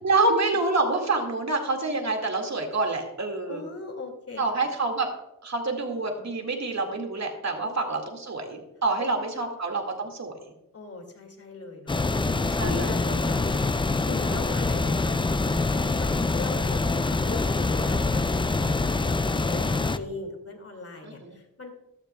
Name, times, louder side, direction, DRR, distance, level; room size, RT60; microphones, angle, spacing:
voice 1, 0.0-3.6 4.4-5.1 5.4-10.5 12.6-12.9 21.0-21.4, right 3 dB, 50° right, 3 dB, 2.1 m, -27 dB
voice 2, 3.5-4.4 7.6-8.1 9.0-9.6 10.7-13.6 14.1-18.8 19.0-21.7, left 3 dB, 45° left, 4 dB, 2.3 m, -39 dB
sound 1, 11.9-20.0, left 3 dB, 15° left, 0.4 m, -25 dB
14.0 x 13.0 x 2.3 m, 0.88 s
wide cardioid pair, 105°, 34 cm